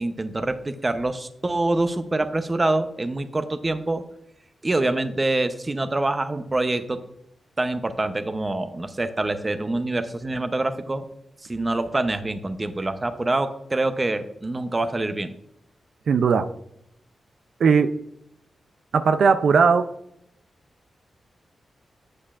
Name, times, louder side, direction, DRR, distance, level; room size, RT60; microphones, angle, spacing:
voice 1, 0.0-4.0 4.6-7.0 7.6-11.0 11.4-15.3, right 2 dB, 25° right, 9 dB, 0.7 m, -25 dB
voice 2, 16.1-16.5 17.6-17.9 18.9-19.9, right 5 dB, 75° right, 9 dB, 0.4 m, -18 dB
9.7 x 8.5 x 2.4 m, 0.77 s
wide cardioid pair, 100°, 0 cm